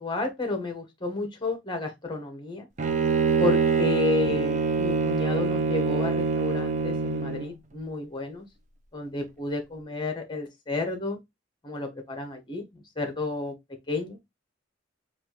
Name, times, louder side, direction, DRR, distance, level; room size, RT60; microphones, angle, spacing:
voice 1, 0.0-2.7 3.4-8.4 8.9-11.2 11.6-13.5 13.9-14.2, left 3 dB, 25° left, 0.8 m, -31 dB
Bowed string instrument, 2.8-7.5, right 5 dB, 35° right, 0.4 m, -25 dB
4.2 x 2.4 x 2.8 m
head